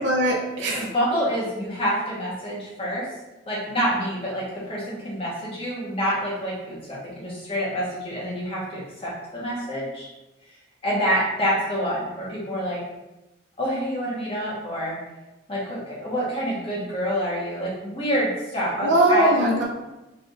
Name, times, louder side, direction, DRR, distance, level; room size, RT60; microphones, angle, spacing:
voice 1, 0.0-0.9 18.8-19.6, right 1 dB, 70° right, -3 dB, 0.7 m, -20 dB
voice 2, 0.7-3.0 3.5-10.1 10.8-12.8 13.6-14.9 15.5-19.3, equal, 30° left, -6 dB, 1.3 m, -27 dB
4.4 x 3.5 x 2.5 m, 1.0 s
head